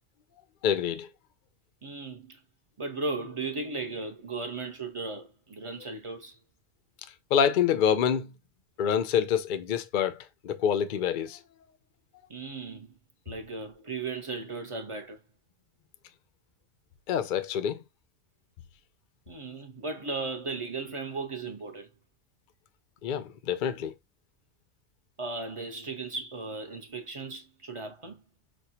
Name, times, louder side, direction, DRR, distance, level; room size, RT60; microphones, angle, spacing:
voice 1, 0.6-1.1 7.3-8.3 8.8-10.2 10.4-11.4 17.1-17.8 23.0-23.9, left 8 dB, 65° left, 0.4 m, -26 dB
voice 2, 1.8-2.4 2.8-6.4 12.3-12.9 13.3-15.2 19.3-21.9 25.2-28.2, right 3 dB, 35° right, 0.5 m, -36 dB
6.2 x 2.2 x 2.8 m
omnidirectional pair, 1.4 m